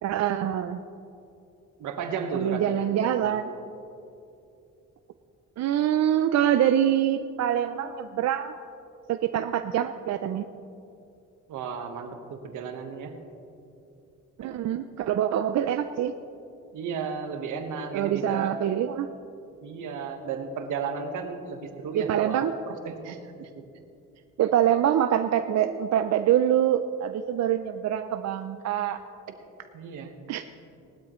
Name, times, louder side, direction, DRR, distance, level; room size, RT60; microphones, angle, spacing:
voice 1, 0.0-0.8 2.3-3.5 5.6-8.5 9.1-10.5 14.4-16.1 17.9-19.1 21.9-22.5 23.1-23.2 24.4-29.0 30.3-30.4, right 10 dB, 60° right, 9 dB, 0.5 m, -25 dB
voice 2, 1.8-3.4 11.5-13.1 14.4-14.5 16.7-18.5 19.6-23.2 29.7-30.1, right 5 dB, 80° right, 5 dB, 1.4 m, -34 dB
19.0 x 12.0 x 3.1 m, 2.8 s
cardioid pair, 90°, 30 cm